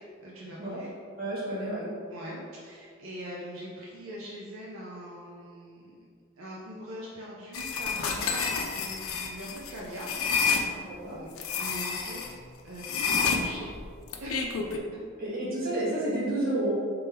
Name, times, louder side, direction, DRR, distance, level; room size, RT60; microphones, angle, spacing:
voice 1, 0.2-0.9 2.1-6.1 6.4-10.1 10.4-10.8 11.1-11.3 11.6-13.7 14.2-14.5, equal, 75° right, -5 dB, 0.6 m, -42 dB
voice 2, 1.2-2.0 10.8-11.2 15.2-16.8, right 1 dB, 45° right, -8 dB, 1.5 m, -30 dB
sound 1, 7.5-10.7 11.4-12.3 12.8-14.8, left 5 dB, 85° left, 0.5 m, -29 dB
3.5 x 3.4 x 4.4 m, 2.3 s
head